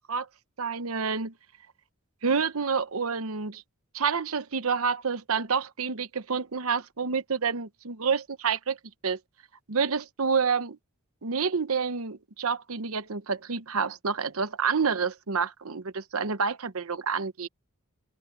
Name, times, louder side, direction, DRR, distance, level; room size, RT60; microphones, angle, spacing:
voice 1, 0.6-1.3 2.2-3.6 3.9-8.8 9.0-9.2 9.7-10.8 11.2-17.5, right 5 dB, 70° right, 1.0 m, -28 dB
open air
head